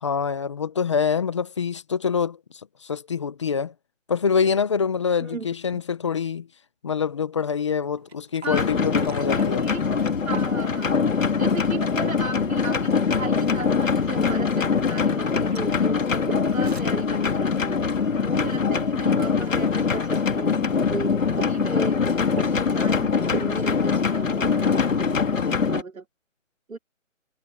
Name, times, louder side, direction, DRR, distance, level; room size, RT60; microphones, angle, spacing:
voice 1, 0.0-3.7 4.1-6.5 6.8-9.7 24.9-25.2, left 6 dB, 20° left, 1.2 m, -25 dB
sound 1, 7.9-25.7, right 6 dB, 50° right, 2.8 m, -43 dB
voice 2, 8.4-8.8 9.1-9.8 10.3-17.8 18.2-26.0 26.7-26.8, right 4 dB, 85° right, 4.5 m, -36 dB
sound 2, 8.5-25.8, left 5 dB, 75° left, 2.7 m, -23 dB
hypercardioid pair, 175°, 40 cm